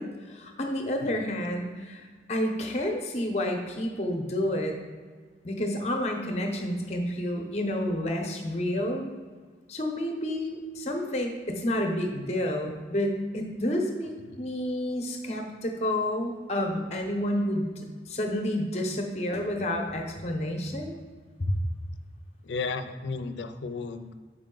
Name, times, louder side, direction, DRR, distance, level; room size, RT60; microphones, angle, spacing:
voice 1, 0.0-4.7 5.4-9.1 9.7-20.9 21.4-21.5, left 1 dB, 35° left, 3 dB, 0.8 m, -30 dB
voice 2, 22.4-24.1, left 4 dB, 85° left, 10 dB, 0.5 m, -34 dB
6.6 x 5.0 x 3.8 m, 1.5 s
head